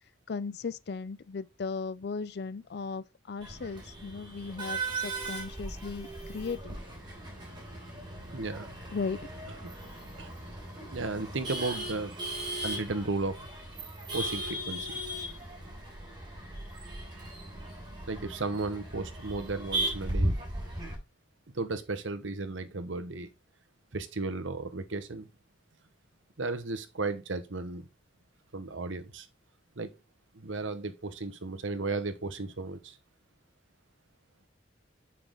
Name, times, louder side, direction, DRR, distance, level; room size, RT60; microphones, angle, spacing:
voice 1, 0.3-6.7 8.9-9.2, left 4 dB, 55° left, 0.4 m, -36 dB
Male speech man speaking / Laughter / Chatter, 3.4-21.0, right 1 dB, 25° right, 3.4 m, -37 dB
voice 2, 8.3-8.7 9.6-9.7 10.2-10.3 10.9-12.2 12.6-13.5 14.1-14.9 18.1-20.3 21.5-23.3 23.9-25.3 26.4-27.9 28.5-29.3 29.8-29.9 30.3-33.0, right 3 dB, 75° right, 1.1 m, -34 dB
7.1 x 5.8 x 3.8 m
head